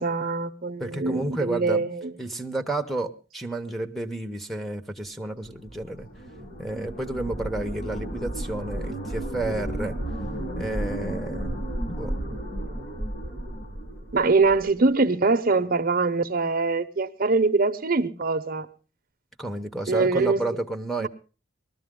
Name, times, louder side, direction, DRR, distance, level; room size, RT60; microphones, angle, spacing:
voice 1, 0.0-2.1 14.1-18.7 19.9-20.4 21.0-21.1, right 3 dB, 45° right, 0.8 m, -23 dB
voice 2, 0.8-1.8 2.2-6.1 6.6-10.0 10.6-12.1 19.4-21.1, right 2 dB, ahead, 0.9 m, -31 dB
sound 1, 5.5-14.7, right 1 dB, 45° left, 5.1 m, -33 dB
20.0 x 13.5 x 3.7 m
head